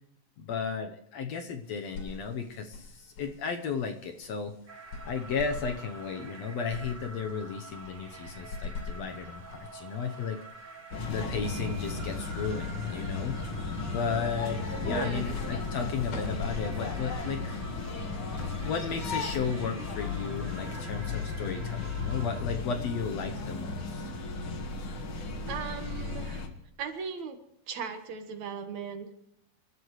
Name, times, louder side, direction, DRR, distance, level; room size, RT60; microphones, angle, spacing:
voice 1, 0.4-4.5 5.1-10.4 11.1-13.4 13.9-17.6 18.6-24.1, left 6 dB, 65° left, 6 dB, 1.8 m, -34 dB
sound 1, 1.6-20.5, left 4 dB, 80° left, 4.5 m, -46 dB
sound 2, 4.7-22.4, right 3 dB, 30° right, 2.2 m, -48 dB
sound 3, 10.9-26.5, left 4 dB, 45° left, 2.1 m, -35 dB
voice 2, 14.9-15.3 25.5-26.4 26.8-27.4 27.7-29.1, right 6 dB, 65° right, 6 dB, 2.6 m, -37 dB
27.5 x 13.0 x 3.2 m, 0.77 s
omnidirectional pair, 3.8 m